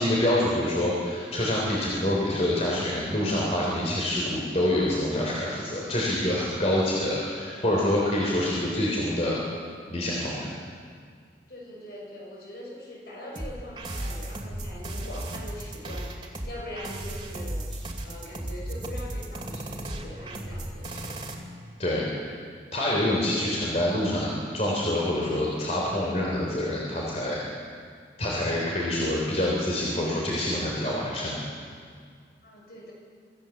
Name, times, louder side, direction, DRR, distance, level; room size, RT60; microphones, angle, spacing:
voice 1, 0.0-9.4 9.9-10.5 21.8-22.4 22.7-27.4 28.2-31.4, left 1 dB, 35° left, -4 dB, 3.5 m, -26 dB
voice 2, 8.5-8.8 11.5-21.2 32.4-32.9, left 1 dB, 60° left, -2 dB, 6.8 m, -42 dB
sound 1, 13.4-21.3, right 1 dB, 30° right, 2.5 m, -35 dB
26.0 x 15.5 x 7.3 m, 2.1 s
head